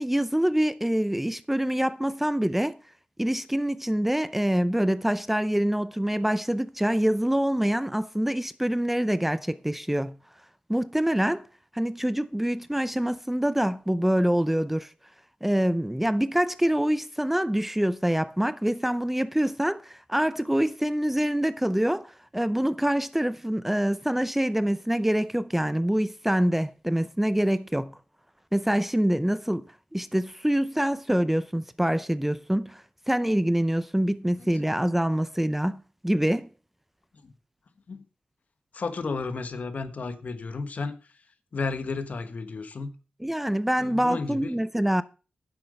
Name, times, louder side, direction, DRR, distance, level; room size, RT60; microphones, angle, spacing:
voice 1, 0.0-2.8 3.2-10.2 10.7-11.5 11.7-14.9 15.4-28.0 28.5-29.7 29.9-36.5 43.2-45.0, equal, 5° right, 0.5 m, -25 dB
voice 2, 38.7-41.0 41.5-42.9 43.8-44.5, left 4 dB, 60° left, 1.3 m, -33 dB
10.5 x 7.5 x 5.3 m
cardioid pair, 75°, 3 cm